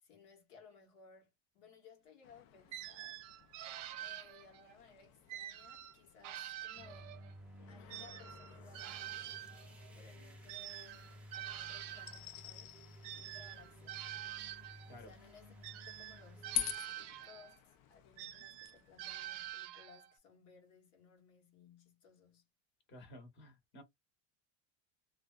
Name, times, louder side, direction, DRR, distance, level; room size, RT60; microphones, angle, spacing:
voice 1, 0.0-3.3 4.0-7.2 7.7-9.4 9.9-12.7 13.1-14.1 14.8-16.6 16.9-22.5, left 5 dB, 75° left, 1.1 m, -61 dB
sound 1, 2.2-19.5, left 11 dB, 55° left, 0.4 m, -49 dB
sound 2, 2.7-4.7 5.3-7.4 7.9-12.2 13.0-15.0 15.6-17.6 18.2-20.2, right 13 dB, 70° right, 0.6 m, -47 dB
sound 3, 6.7-16.7, equal, 5° right, 0.4 m, -56 dB
voice 2, 22.9-23.8, left 1 dB, 30° left, 1.0 m, -54 dB
2.5 x 2.2 x 2.2 m
cardioid pair, 150°, 38 cm